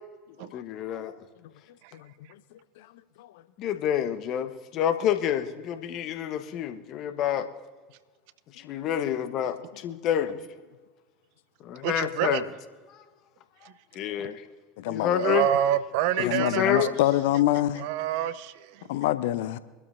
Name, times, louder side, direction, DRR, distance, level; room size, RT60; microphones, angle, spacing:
voice 1, 0.5-1.1 3.6-7.5 8.6-10.4 11.6-12.4 13.9-14.4 14.9-15.5 16.2-16.9, left 10 dB, 50° left, 1.1 m, -28 dB
voice 2, 11.8-12.5 13.6-13.7 14.2-14.3 15.2-16.9 17.8-18.8, right 11 dB, 60° right, 0.6 m, -27 dB
voice 3, 14.8-15.4 16.2-17.9 18.9-19.6, left 14 dB, 65° left, 0.6 m, -26 dB
24.5 x 12.5 x 2.6 m
figure-of-eight pair, 75°, 0 cm